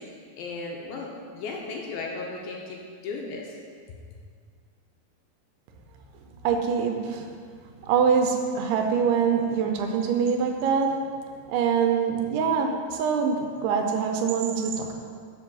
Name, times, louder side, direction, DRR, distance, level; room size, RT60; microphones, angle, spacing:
voice 1, 0.0-2.8 3.0-3.6, left 3 dB, 80° left, -1 dB, 2.4 m, -36 dB
voice 2, 6.4-7.3 7.9-11.0 11.5-14.9, right 6 dB, 90° right, 4 dB, 2.7 m, -24 dB
6.0 x 5.4 x 6.0 m, 2.1 s
omnidirectional pair, 4.6 m